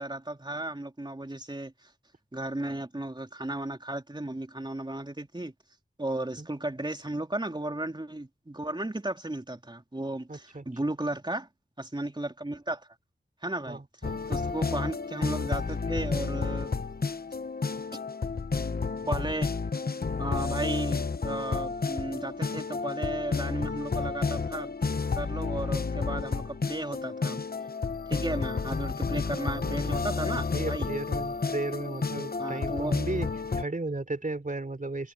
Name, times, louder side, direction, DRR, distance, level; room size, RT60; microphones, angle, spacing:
voice 1, 0.0-1.7 2.3-5.5 6.0-11.5 11.8-12.9 13.4-13.8 14.3-16.7 19.1-19.5 20.2-24.8 25.1-27.4 28.1-30.9 32.4-33.0, right 1 dB, 25° right, 3.3 m, -34 dB
voice 2, 10.3-10.9 13.7-14.2 29.6-29.8 30.5-33.3 33.6-35.1, right 2 dB, 40° right, 3.6 m, -35 dB
sound 1, 14.0-33.6, left 4 dB, 50° left, 1.0 m, -31 dB
wide cardioid pair, 55°, 20 cm